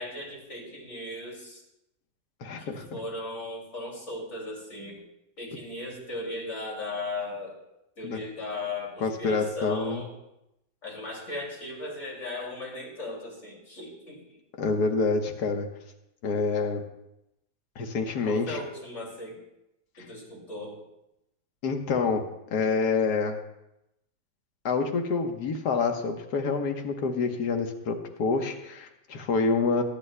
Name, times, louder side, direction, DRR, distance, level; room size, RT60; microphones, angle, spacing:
voice 1, 0.0-1.6 2.6-5.0 5.4-7.6 8.0-10.1 10.8-14.4 18.2-19.4 20.0-20.8, left 2 dB, 40° left, -2 dB, 2.9 m, -37 dB
voice 2, 2.4-3.0 8.0-8.2 9.0-10.0 14.5-15.7 16.2-16.8 17.8-18.6 21.6-22.2 22.5-23.4 24.6-29.8, left 4 dB, 65° left, 5 dB, 1.6 m, -27 dB
21.5 x 9.8 x 2.2 m, 0.87 s
omnidirectional pair, 1.9 m